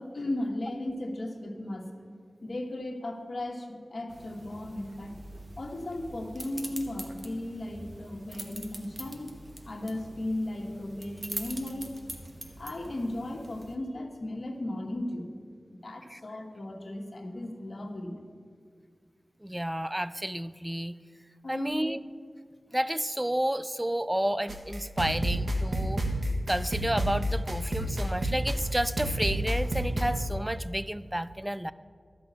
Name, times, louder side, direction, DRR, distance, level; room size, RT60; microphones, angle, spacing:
voice 1, 0.0-1.9 2.4-5.2 5.6-12.0 12.6-15.4 15.7-18.2 21.4-21.8, left 1 dB, 55° left, 2 dB, 1.2 m, -36 dB
sound 1, 4.1-13.8, right 1 dB, 40° right, 1.1 m, -44 dB
voice 2, 19.4-20.9 21.5-22.0 22.7-26.0 26.5-31.7, right 1 dB, 10° right, 15 dB, 0.3 m, -31 dB
sound 2, 24.5-30.0, right 1 dB, 70° right, 1.4 m, -30 dB
12.5 x 5.0 x 8.0 m, 2.2 s
wide cardioid pair, 85°, 0 cm